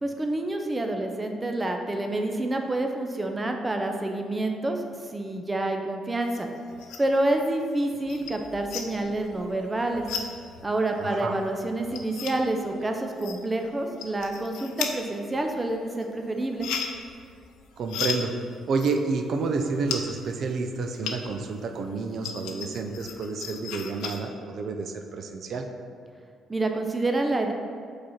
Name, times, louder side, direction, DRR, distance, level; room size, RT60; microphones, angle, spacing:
voice 1, 0.0-4.8 5.1-6.5 7.0-10.1 10.6-16.7 26.5-27.5, right 2 dB, 20° right, 3 dB, 0.6 m, -28 dB
sound 1, 6.3-7.2 7.6-21.5 21.8-24.2, left 6 dB, 85° left, 0.6 m, -37 dB
voice 2, 11.0-11.4 17.8-18.3 18.7-25.7, right 4 dB, 60° right, 5 dB, 0.5 m, -29 dB
5.1 x 4.1 x 5.8 m, 2.4 s
supercardioid pair, 70°, 0 cm